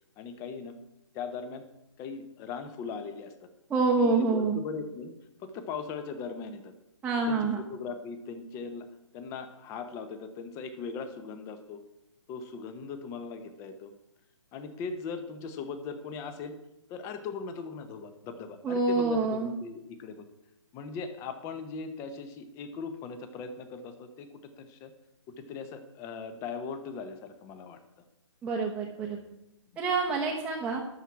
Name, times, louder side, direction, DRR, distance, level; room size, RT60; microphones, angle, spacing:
voice 1, 0.2-0.7 1.1-1.6 2.0-3.5 4.0-5.1 5.4-6.7 7.3-8.9 9.1-11.8 12.3-13.9 14.5-16.6 16.9-20.3 20.7-24.9 25.4-27.8 29.1-29.2 29.7-29.8, left 5 dB, 20° left, 9 dB, 0.9 m, -39 dB
voice 2, 3.7-4.6 7.0-7.6 18.6-19.5 28.4-29.2 29.8-30.8, right 3 dB, 10° right, -3 dB, 1.0 m, -27 dB
12.5 x 4.5 x 8.4 m, 0.88 s
hypercardioid pair, 150°, 16 cm